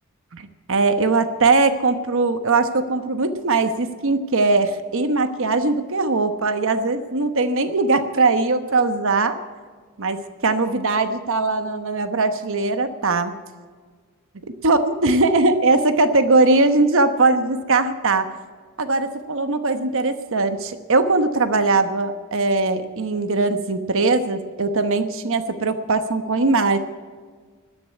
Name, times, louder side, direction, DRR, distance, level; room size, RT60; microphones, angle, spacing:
voice 1, 0.3-9.4 10.0-13.3 14.6-18.3 18.8-26.8, right 3 dB, 65° right, 9 dB, 1.1 m, -20 dB
13.0 x 9.8 x 9.3 m, 1.5 s
head